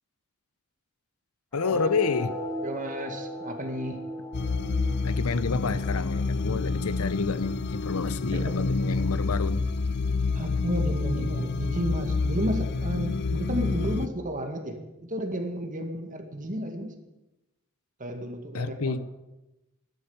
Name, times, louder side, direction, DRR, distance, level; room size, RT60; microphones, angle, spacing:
voice 1, 1.5-2.3 5.0-9.7 18.5-19.0, left 4 dB, 90° left, 14 dB, 0.7 m, -29 dB
sound 1, 1.5-8.5, left 1 dB, 15° left, 4.0 m, -39 dB
voice 2, 2.6-4.0 8.3-8.6 10.3-16.9 18.0-19.1, equal, 40° right, 5 dB, 2.0 m, -32 dB
sound 2, 4.3-14.1, left 3 dB, 50° left, 0.5 m, -28 dB
13.0 x 11.5 x 7.2 m, 0.99 s
head